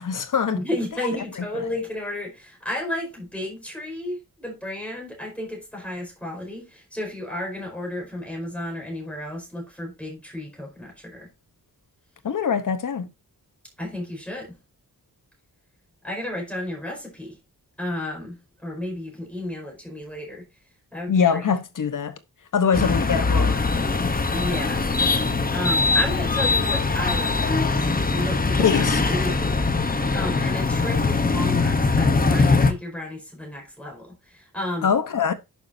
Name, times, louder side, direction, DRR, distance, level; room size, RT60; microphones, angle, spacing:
voice 1, 0.0-0.6 12.2-13.1 21.1-22.2 22.5-23.6 28.6-29.0 34.8-35.3, left 6 dB, 55° left, 1.0 m, -23 dB
voice 2, 0.5-11.3 13.8-14.6 16.0-17.4 17.8-20.4 20.9-21.5 24.3-24.9 25.5-29.7 30.1-34.9, left 1 dB, 5° left, 5.0 m, -32 dB
sound 1, 22.7-32.7, left 3 dB, 25° left, 0.8 m, -22 dB
10.5 x 7.3 x 2.7 m
wide cardioid pair, 160°, 37 cm